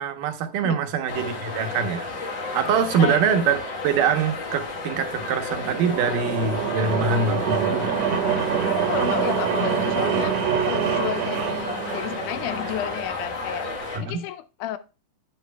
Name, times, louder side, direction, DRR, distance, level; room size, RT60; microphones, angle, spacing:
voice 1, 0.0-2.1 2.5-7.9 14.0-14.2, right 6 dB, 85° right, 2.5 m, -24 dB
sound 1, 1.1-14.0, left 3 dB, 50° left, 1.5 m, -32 dB
sound 2, 5.1-13.0, right 7 dB, 65° right, 1.9 m, -26 dB
voice 2, 8.8-10.4 10.7-13.7 14.0-14.8, left 12 dB, 80° left, 2.0 m, -31 dB
10.5 x 9.3 x 2.2 m
omnidirectional pair, 3.7 m